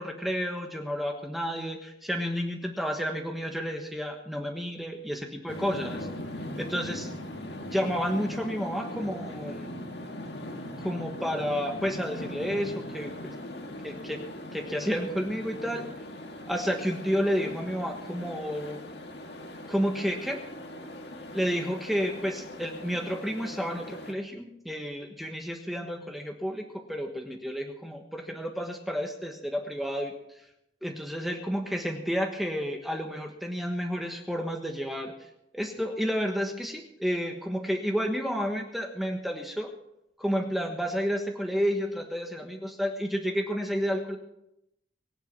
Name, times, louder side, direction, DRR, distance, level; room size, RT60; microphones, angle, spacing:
voice 1, 0.0-6.1 6.6-7.2 7.7-9.7 10.8-13.1 13.8-14.2 14.5-15.8 16.5-18.8 19.7-20.4 21.3-30.1 30.8-35.1 35.5-39.7 40.2-44.2, equal, ahead, 2 dB, 1.3 m, -31 dB
sound 1, 5.5-24.1, left 1 dB, 65° left, 1.8 m, -40 dB
23.0 x 8.2 x 6.1 m, 0.82 s
head